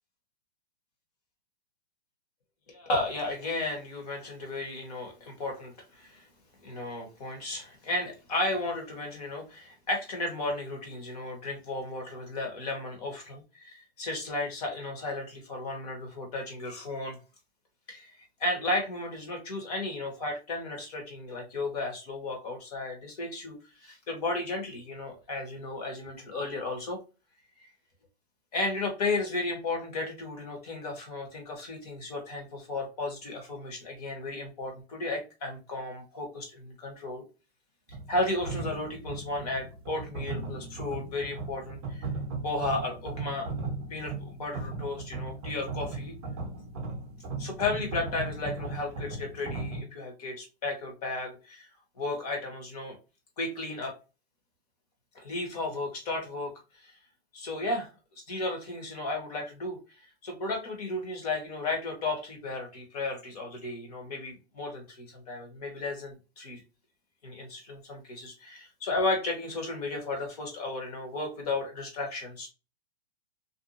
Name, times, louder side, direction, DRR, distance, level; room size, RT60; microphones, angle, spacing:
voice 1, 2.7-6.2 6.6-17.2 17.9-18.1 18.4-27.0 28.5-37.2 38.1-42.1 42.4-43.5 43.9-46.1 47.4-51.7 52.0-53.0 53.4-53.9 55.1-56.9 57.3-57.9 58.3-59.8 60.2-66.6 67.2-72.5, left 2 dB, 35° left, 2 dB, 1.1 m, -34 dB
sound 1, 37.9-49.8, right 3 dB, 25° right, 0.7 m, -37 dB
2.6 x 2.2 x 2.4 m, 0.30 s
hypercardioid pair, 165°, 32 cm